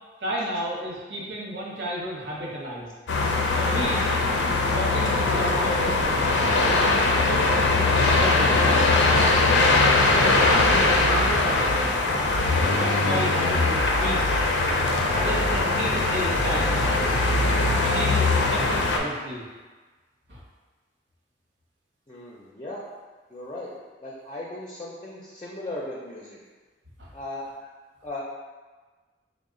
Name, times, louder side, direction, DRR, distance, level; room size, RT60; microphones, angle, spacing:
voice 1, 0.2-2.9 3.5-4.1 4.4-6.5 7.2-8.7 9.0-9.8 10.1-12.0 12.7-14.4 15.1-17.2 17.7-19.4 20.3-20.4 27.0-27.1, equal, 75° right, -4 dB, 0.9 m, -33 dB
sound 1, 3.1-19.0, left 2 dB, 90° left, 0.5 m, -21 dB
voice 2, 22.1-22.8 23.3-23.7 24.0-26.4 27.1-27.4 28.0-28.2, left 2 dB, 25° left, -5 dB, 0.5 m, -37 dB
4.0 x 2.1 x 3.7 m, 1.3 s
head